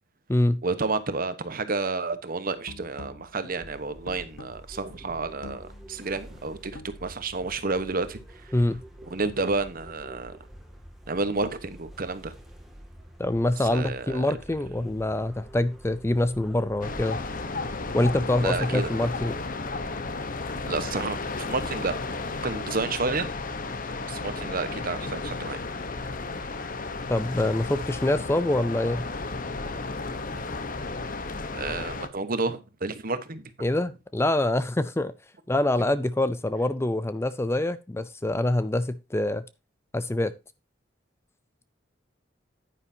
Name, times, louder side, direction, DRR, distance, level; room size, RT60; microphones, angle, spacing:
voice 1, 0.6-8.5 9.1-10.4 11.1-12.3 13.6-14.4 18.4-18.9 20.7-21.9 22.4-23.3 24.1-25.6 31.5-33.5, right 3 dB, 50° right, 1.1 m, -30 dB
sound 1, 2.6-7.8, left 2 dB, 85° left, 1.1 m, -47 dB
eminonu-iskele, 3.5-21.0, equal, ahead, 2.1 m, -48 dB
voice 2, 13.2-17.2 17.9-19.4 27.1-29.1 33.6-35.1 35.5-39.4 39.9-40.3, left 1 dB, 15° left, 0.5 m, -25 dB
sound 2, 16.8-32.1, left 3 dB, 45° left, 1.0 m, -33 dB
9.8 x 9.8 x 2.8 m
head